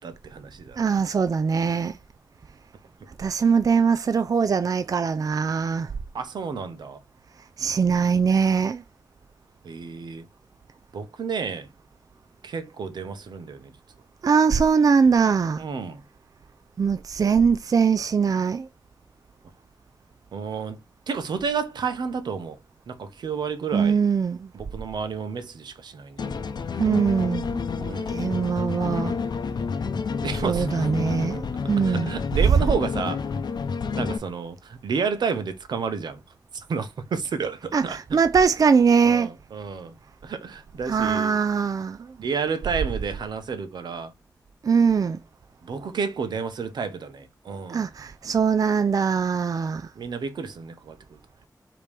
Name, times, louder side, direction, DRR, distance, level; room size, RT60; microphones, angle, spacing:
voice 1, 0.0-0.8 6.1-7.0 9.6-10.3 10.9-11.7 12.4-13.7 15.6-16.0 20.3-20.8 21.1-22.6 22.9-24.0 24.5-26.3 27.8-28.5 30.2-30.9 31.8-33.2 33.9-36.2 36.5-38.2 39.0-39.9 40.2-41.4 42.2-44.1 45.6-47.9 50.0-51.0, right 5 dB, 85° right, 0.8 m, -31 dB
voice 2, 0.8-1.9 3.2-5.9 7.6-8.8 14.2-15.6 16.8-18.6 23.7-24.4 26.8-27.6 28.1-29.1 30.4-31.4 31.7-32.1 37.7-37.8 38.1-39.3 40.9-42.0 44.7-45.2 47.7-49.8, right 6 dB, 55° right, 0.3 m, -21 dB
sound 1, 26.2-34.2, left 5 dB, 80° left, 0.6 m, -29 dB
4.9 x 3.0 x 3.3 m
cardioid pair, 45°, 7 cm